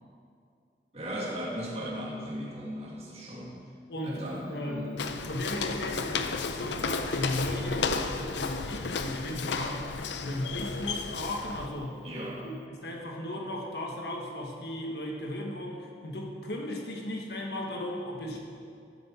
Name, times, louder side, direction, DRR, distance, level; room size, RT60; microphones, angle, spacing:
voice 1, 0.9-3.6 4.0-4.9 12.0-12.4, equal, 35° right, -4 dB, 2.1 m, -37 dB
voice 2, 3.9-9.9 10.2-12.0 12.4-18.4, left 1 dB, 70° left, 0 dB, 1.5 m, -36 dB
Walk footsteps, 5.0-11.7, left 4 dB, 90° left, 0.6 m, -33 dB
14.0 x 7.6 x 4.5 m, 2.4 s
head